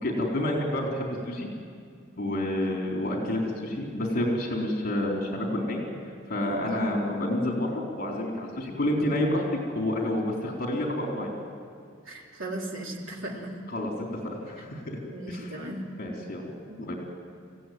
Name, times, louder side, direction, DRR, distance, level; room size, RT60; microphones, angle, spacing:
voice 1, 0.0-1.5 2.2-9.4 9.7-11.3 13.7-13.9 14.2-15.0 15.3-15.5 16.0-16.5 16.8-17.0, left 1 dB, 45° left, -1 dB, 3.8 m, -29 dB
voice 2, 12.0-13.5 14.6-14.7 15.1-15.9 16.7-17.0, right 1 dB, 75° right, -1 dB, 4.1 m, -37 dB
27.5 x 16.0 x 9.5 m, 2.2 s
head